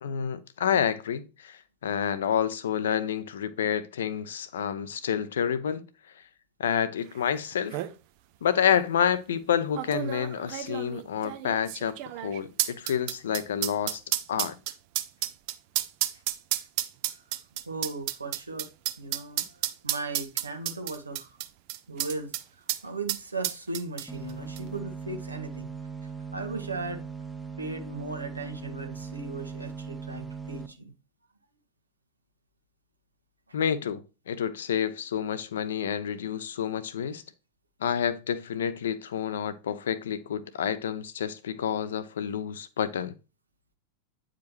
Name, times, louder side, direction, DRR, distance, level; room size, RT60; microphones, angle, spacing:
voice 1, 0.0-5.9 6.6-7.8 8.4-14.0 14.3-14.6 33.5-37.2 37.8-43.1, left 8 dB, 65° left, 0.7 m, -29 dB
sound 1, 7.2-7.3 7.5-7.9 8.7-8.8 9.7-22.4 22.7-22.8 23.1-24.3 24.6-24.7, right 14 dB, 45° right, 0.6 m, -31 dB
voice 2, 17.7-18.7 19.0-21.3 21.9-22.3 22.6-25.7 26.0-27.0 27.6-30.9 33.5-33.6, right 3 dB, 80° right, 1.3 m, -37 dB
sound 2, 24.1-30.7, right 6 dB, 5° right, 0.9 m, -39 dB
9.2 x 5.0 x 3.1 m
figure-of-eight pair, 90°, 0 cm